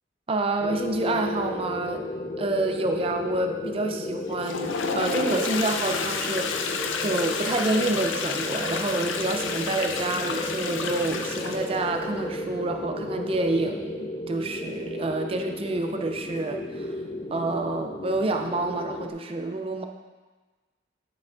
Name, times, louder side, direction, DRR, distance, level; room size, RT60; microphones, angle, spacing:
voice 1, 0.3-2.0 2.4-6.7 7.0-16.9 17.3-19.8, right 2 dB, 30° right, 5 dB, 0.5 m, -28 dB
sound 1, 0.6-19.1, left 2 dB, 30° left, 0.5 m, -33 dB
Toilet flush, 4.3-11.9, left 5 dB, 85° left, 0.5 m, -31 dB
8.8 x 5.9 x 2.5 m, 1.3 s
head